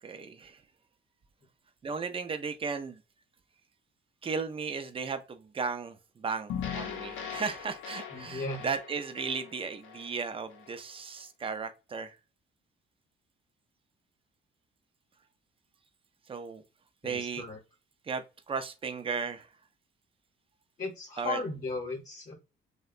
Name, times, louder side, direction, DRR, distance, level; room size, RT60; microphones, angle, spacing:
voice 1, 0.0-0.6 1.8-3.0 4.2-12.2 16.3-16.6 17.0-17.4 18.0-19.5 21.2-21.4, right 5 dB, 25° right, 0.5 m, -35 dB
sound 1, 6.5-10.8, left 8 dB, 85° left, 0.5 m, -40 dB
voice 2, 8.1-8.6 17.0-17.6 20.8-22.3, left 3 dB, 40° left, 0.9 m, -36 dB
2.7 x 2.1 x 2.4 m
cardioid pair, 90°, 20 cm